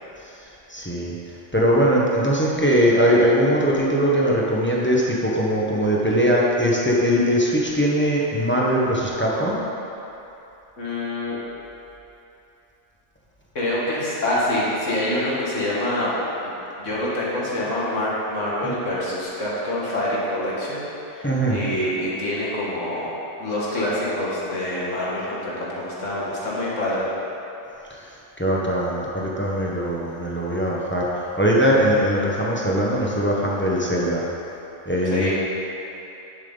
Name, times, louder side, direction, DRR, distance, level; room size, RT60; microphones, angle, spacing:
voice 1, 0.2-9.6 18.6-18.7 21.2-21.6 27.9-34.2 34.9-35.3, equal, 10° left, -5 dB, 1.1 m, -21 dB
voice 2, 10.8-11.4 13.6-16.1 16.4-20.8 21.1-27.1 35.1-35.3, left 1 dB, 80° left, -7 dB, 2.1 m, -26 dB
10.5 x 7.4 x 4.0 m, 3.0 s
omnidirectional pair, 1.3 m